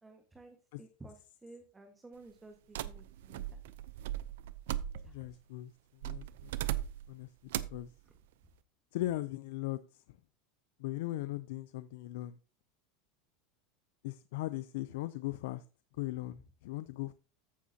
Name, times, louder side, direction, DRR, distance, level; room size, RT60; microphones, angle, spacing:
voice 1, 0.0-3.4 5.0-5.1, right 2 dB, 15° right, 4 dB, 1.5 m, -54 dB
sound 1, 2.7-5.3 6.0-7.1 7.5-7.9, right 13 dB, 75° right, 0.6 m, -38 dB
voice 2, 5.1-5.7 6.0-6.5 7.1-7.3 7.7-7.9 8.9-9.8 10.8-12.4 14.0-15.6 16.0-17.1, left 16 dB, 75° left, 15 dB, 0.4 m, -38 dB
14.5 x 6.1 x 2.8 m, 0.34 s
supercardioid pair, 110°, 0 cm